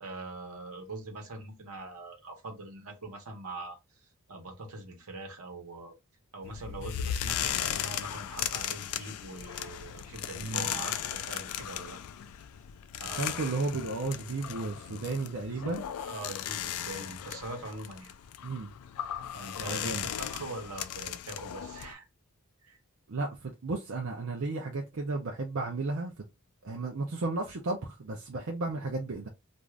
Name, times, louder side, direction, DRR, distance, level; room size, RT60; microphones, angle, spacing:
voice 1, 0.0-3.8 4.3-5.9 6.3-12.0 13.0-13.5 15.5-15.7 16.0-18.1 19.3-22.0 22.6-22.8, right 2 dB, 80° right, 1.0 m, -42 dB
sound 1, 6.4-21.9, left 10 dB, 85° left, 0.3 m, -37 dB
voice 2, 10.4-10.7 13.2-15.9 18.4-18.7 19.7-20.1 23.1-26.1 26.6-29.3, right 3 dB, 60° right, 0.6 m, -33 dB
2.5 x 2.4 x 3.2 m
head